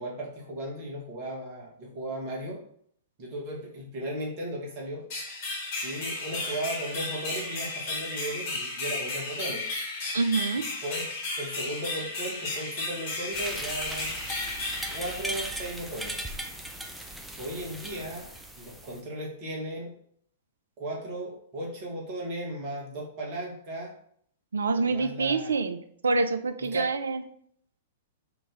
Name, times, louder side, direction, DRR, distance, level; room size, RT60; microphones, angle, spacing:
voice 1, 0.0-2.6 3.2-5.0 5.8-9.6 10.8-11.1 11.4-14.1 14.9-16.1 17.4-18.3 18.6-19.9 20.8-23.9 24.8-25.6 26.7-26.9, right 1 dB, 40° right, -2 dB, 1.2 m, -36 dB
sound 1, 5.1-15.8, left 3 dB, 45° left, 1.5 m, -34 dB
voice 2, 10.1-10.7 24.5-25.8 26.0-27.2, right 4 dB, 70° right, 9 dB, 0.3 m, -26 dB
sound 2, 13.3-19.0, right 1 dB, 5° right, 0.4 m, -38 dB
3.0 x 2.6 x 3.8 m, 0.64 s
figure-of-eight pair, 105°, 0 cm